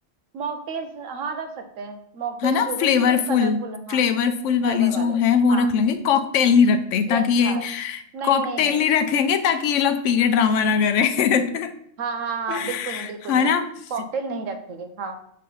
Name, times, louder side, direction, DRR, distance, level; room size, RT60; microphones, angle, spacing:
voice 1, 0.3-4.0 4.6-5.2 5.5-5.7 7.1-7.6 8.1-8.8 12.0-13.5 13.9-15.2, right 5 dB, 80° right, 7 dB, 1.2 m, -31 dB
voice 2, 2.4-3.6 3.9-11.7 12.5-13.7, left 6 dB, 75° left, 8 dB, 1.0 m, -21 dB
6.4 x 3.3 x 5.4 m, 0.69 s
omnidirectional pair, 1.3 m